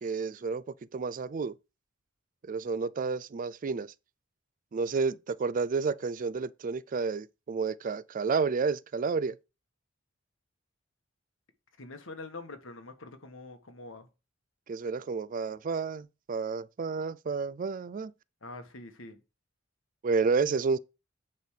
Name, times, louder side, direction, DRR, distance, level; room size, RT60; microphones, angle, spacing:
voice 1, 0.0-0.6 0.9-1.5 2.5-3.9 4.7-9.3 14.7-18.1 20.0-20.8, right 4 dB, 40° right, 0.4 m, -30 dB
voice 2, 11.8-14.1 18.4-19.2, left 2 dB, 70° left, 1.5 m, -45 dB
9.2 x 3.5 x 6.4 m
head